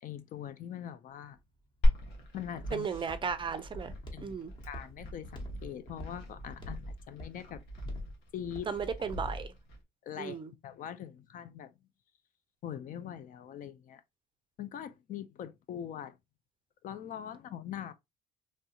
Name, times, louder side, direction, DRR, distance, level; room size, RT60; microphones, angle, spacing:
voice 1, 0.0-1.4 2.3-2.9 4.1-4.3 4.7-7.6 8.3-8.7 10.1-10.4 10.6-11.7 12.6-14.0 14.6-16.1 16.8-17.9, left 10 dB, 55° left, 0.4 m, -42 dB
Walk footsteps, 1.1-9.3, equal, 30° left, 1.2 m, -49 dB
Glass, 1.8-9.8, equal, 85° left, 1.2 m, -35 dB
voice 2, 2.7-3.9 4.2-4.5 8.7-9.5 10.2-10.5, right 6 dB, 30° right, 0.4 m, -35 dB
3.2 x 2.4 x 2.7 m
cardioid pair, 110°, 17 cm